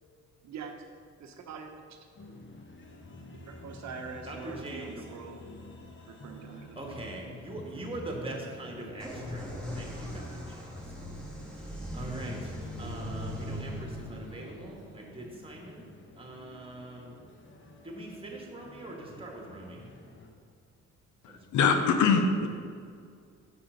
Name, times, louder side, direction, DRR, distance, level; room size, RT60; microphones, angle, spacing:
voice 1, 1.2-2.0 3.5-5.4 6.1-6.8, right 5 dB, 65° right, 4 dB, 0.9 m, -43 dB
sound 1, 2.2-20.3, left 2 dB, 40° left, 1.1 m, -49 dB
voice 2, 4.2-5.0 6.7-10.7 11.5-12.5 12.8-15.9 16.2-17.2 17.8-19.8 21.3-21.7, right 2 dB, 20° right, 0 dB, 1.7 m, -42 dB
sound 2, 9.0-16.6, equal, 5° left, 1.9 m, -40 dB
voice 3, 21.2-22.5, left 5 dB, 75° left, 6 dB, 0.8 m, -24 dB
6.7 x 5.7 x 5.1 m, 2.2 s
cardioid pair, 90°, 30 cm